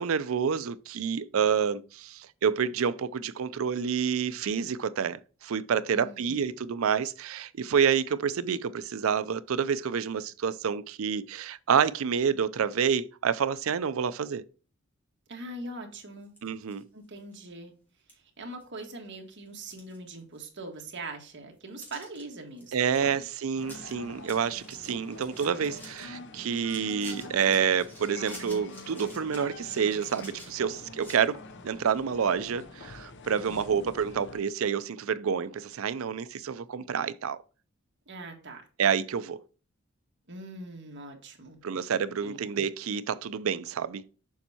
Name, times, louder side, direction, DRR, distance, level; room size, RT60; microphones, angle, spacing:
voice 1, 0.0-14.4 16.4-16.8 22.7-31.4 31.6-37.4 38.8-39.4 41.6-44.0, right 7 dB, 75° right, 0.4 m, -28 dB
voice 2, 5.9-6.5 15.3-16.3 16.9-17.7 18.1-23.2 33.5-33.9 38.1-38.7 40.3-41.6 42.2-42.4, right 2 dB, 55° right, 1.6 m, -42 dB
sound 1, 16.2-16.8 17.3-17.4 18.1-18.2 18.6-19.1 19.5-20.5 20.8-20.9 21.8-22.2 22.6-23.0 23.3-23.4 23.6-23.9 24.2-26.1 26.5-31.2, equal, 10° left, 2.5 m, -49 dB
sound 2, 23.6-34.4, left 2 dB, 55° left, 0.6 m, -46 dB
7.1 x 5.4 x 2.8 m
head